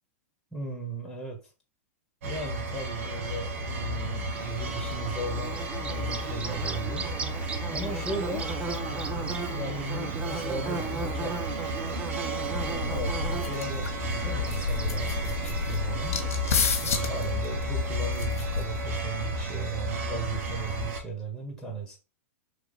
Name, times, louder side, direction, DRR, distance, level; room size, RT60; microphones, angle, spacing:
voice 1, 0.5-1.4 2.2-7.0 7.7-8.5 8.9-11.3 12.3-16.1 16.8-22.0, right 3 dB, 5° left, 1.4 m, -37 dB
sound 1, 2.2-21.0, equal, 70° right, 1.1 m, -32 dB
Bird / Buzz, 4.4-17.3, right 4 dB, 15° right, 0.4 m, -38 dB
sound 2, 12.4-19.0, left 5 dB, 80° left, 0.9 m, -32 dB
3.2 x 2.8 x 4.1 m
hypercardioid pair, 120°, 8 cm